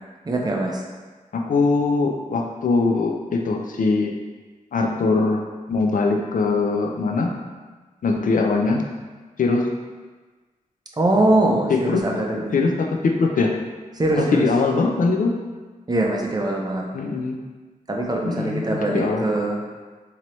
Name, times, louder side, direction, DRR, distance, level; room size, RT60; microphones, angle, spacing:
voice 1, 0.2-0.8 11.0-12.5 14.0-14.4 15.9-16.9 17.9-19.6, right 1 dB, 30° right, 0 dB, 0.5 m, -22 dB
voice 2, 1.3-4.1 4.7-5.4 5.7-7.4 8.0-8.9 9.4-9.7 11.7-12.3 12.5-13.6 14.1-15.4 16.9-17.4 18.2-19.3, left 3 dB, 75° left, 2 dB, 0.4 m, -21 dB
4.4 x 2.8 x 3.0 m, 1.3 s
wide cardioid pair, 125°, 14 cm